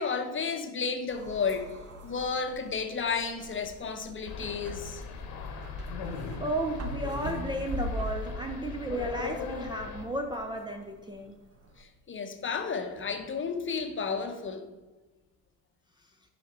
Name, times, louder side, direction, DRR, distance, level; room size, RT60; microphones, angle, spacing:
voice 1, 0.0-1.7 2.0-5.0 11.8-14.7, left 5 dB, 25° left, 6 dB, 0.8 m, -32 dB
sound 1, 1.1-11.8, equal, 35° right, 1.2 m, -42 dB
sound 2, 4.2-10.0, left 5 dB, 60° left, 1.2 m, -39 dB
voice 2, 6.4-11.4, right 1 dB, 10° right, 2 dB, 0.5 m, -33 dB
6.5 x 5.1 x 3.9 m, 1.1 s
hypercardioid pair, 55°, 43 cm